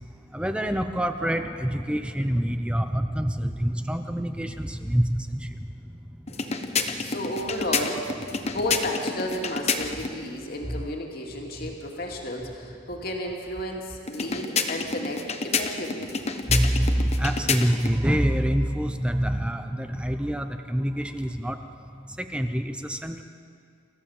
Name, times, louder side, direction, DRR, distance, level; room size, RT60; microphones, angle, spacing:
voice 1, 0.3-6.0 10.7-10.8 11.6-11.7 16.5-21.6 22.2-23.2, equal, 5° right, 7 dB, 0.7 m, -26 dB
sound 1, 6.3-10.2 14.1-18.0, left 5 dB, 30° left, 1.0 m, -29 dB
voice 2, 7.0-8.0 8.4-16.2, left 1 dB, 50° left, 0 dB, 2.5 m, -32 dB
27.5 x 14.0 x 7.2 m, 2.4 s
head